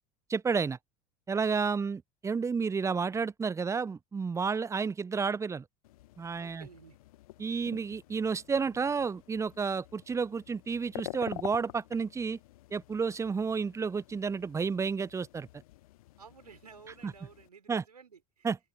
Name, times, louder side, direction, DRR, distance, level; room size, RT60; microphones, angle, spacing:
voice 1, 0.3-0.8 1.3-5.6 6.2-6.7 7.4-12.4 12.7-15.5 17.7-17.8 18.4-18.6, right 5 dB, 15° right, 0.6 m, -31 dB
sound 1, 5.8-17.5, left 17 dB, 65° left, 1.0 m, -48 dB
voice 2, 6.4-7.0 16.2-18.5, right 6 dB, 80° right, 4.6 m, -53 dB
open air
figure-of-eight pair, 70°, 20 cm